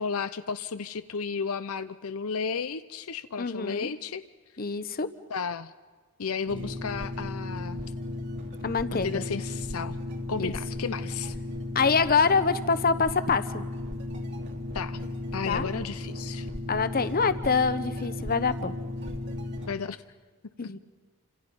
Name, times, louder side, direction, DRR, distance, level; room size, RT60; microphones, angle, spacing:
voice 1, 0.0-4.2 5.3-5.7 6.2-7.8 8.9-10.0 10.3-11.3 14.7-16.5 19.7-20.0 20.6-20.7, left 5 dB, 70° left, 11 dB, 0.7 m, -33 dB
voice 2, 3.4-3.9 4.6-5.1 8.6-9.2 10.4-10.5 11.7-13.6 15.5-15.7 16.7-18.7 20.6-20.8, left 5 dB, 40° left, 13 dB, 1.0 m, -25 dB
sound 1, 6.5-19.7, left 1 dB, 55° right, 2.8 m, -35 dB
29.5 x 26.5 x 5.4 m, 1.4 s
head